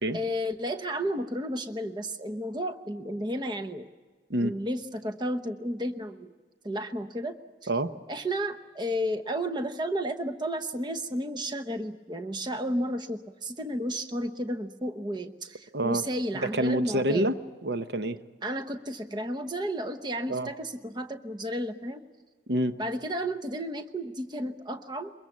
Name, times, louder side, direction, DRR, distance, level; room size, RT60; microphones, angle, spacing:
voice 1, 0.1-3.9 4.4-6.3 6.6-7.4 8.1-17.3 18.4-22.0 22.8-25.1, equal, 25° right, 8 dB, 0.9 m, -32 dB
voice 2, 15.7-16.0 16.4-18.2 20.3-20.5 22.5-22.8, right 1 dB, 75° right, 10 dB, 0.9 m, -27 dB
23.0 x 21.5 x 7.3 m, 1.5 s
head